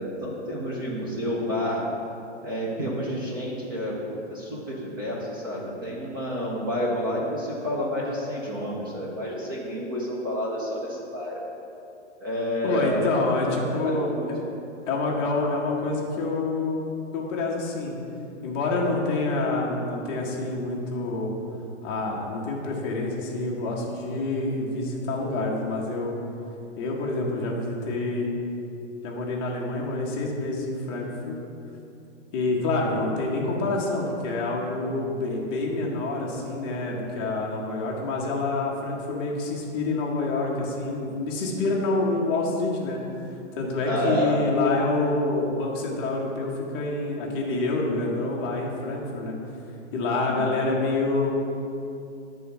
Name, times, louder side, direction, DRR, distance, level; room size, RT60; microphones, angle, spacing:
voice 1, 0.0-1.8 2.4-11.5 12.2-13.6 13.8-14.3 43.9-44.4 50.3-50.5, equal, 20° right, -4 dB, 0.4 m, -29 dB
voice 2, 12.6-14.4 14.9-18.0 18.4-21.3 21.8-26.2 26.8-28.3 29.0-31.4 32.3-43.0 43.5-49.3 49.9-51.3, left 2 dB, 20° left, -2 dB, 0.6 m, -27 dB
7.3 x 3.4 x 5.6 m, 2.7 s
hypercardioid pair, 160°, 37 cm